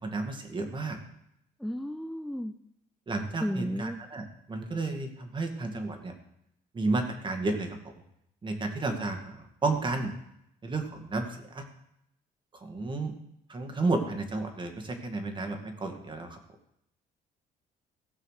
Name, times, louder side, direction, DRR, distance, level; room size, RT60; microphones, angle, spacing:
voice 1, 0.0-1.0 3.1-6.1 6.7-7.8 8.4-10.1 10.6-11.6 12.6-13.1 13.5-16.4, right 3 dB, 30° right, 5 dB, 2.1 m, -32 dB
voice 2, 1.6-2.5 3.4-4.0, equal, ahead, 7 dB, 0.5 m, -33 dB
16.5 x 5.6 x 6.6 m, 0.78 s
cardioid pair, 110°, 17 cm